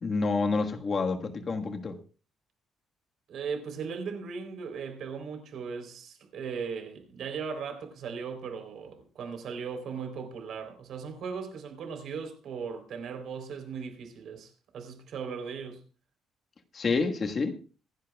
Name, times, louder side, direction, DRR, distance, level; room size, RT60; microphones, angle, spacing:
voice 1, 0.0-2.0 16.7-17.6, left 4 dB, 35° left, 1.5 m, -28 dB
voice 2, 3.3-15.8, right 6 dB, 60° right, 3.6 m, -38 dB
26.0 x 10.5 x 2.4 m
cardioid pair, 160°, 0 cm